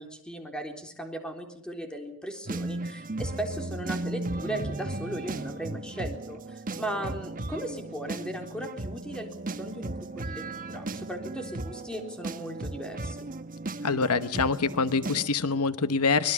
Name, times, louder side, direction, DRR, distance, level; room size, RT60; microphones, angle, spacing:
voice 1, 0.0-13.3, right 1 dB, 5° left, 3 dB, 3.8 m, -37 dB
sound 1, 2.5-15.3, right 2 dB, 40° right, 1.2 m, -36 dB
voice 2, 13.8-16.3, left 4 dB, 85° left, 12 dB, 1.1 m, -25 dB
24.5 x 20.5 x 7.2 m, 0.68 s
head